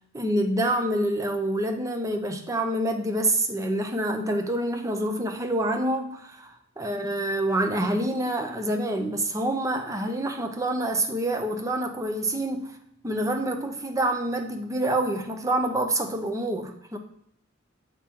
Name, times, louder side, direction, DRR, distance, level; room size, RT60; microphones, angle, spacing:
voice 1, 0.1-12.7 13.0-17.0, right 1 dB, 15° right, 4 dB, 0.6 m, -27 dB
7.2 x 3.7 x 4.3 m, 0.71 s
head